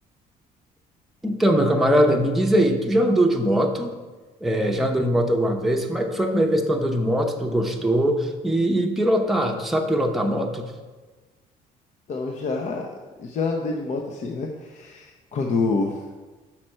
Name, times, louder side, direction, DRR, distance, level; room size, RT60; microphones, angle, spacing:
voice 1, 1.2-3.9 4.4-10.6, equal, ahead, 1 dB, 0.7 m, -21 dB
voice 2, 12.1-12.9 13.2-16.0, left 3 dB, 45° left, 2 dB, 0.7 m, -27 dB
5.8 x 4.4 x 6.4 m, 1.3 s
cardioid pair, 110°, 17 cm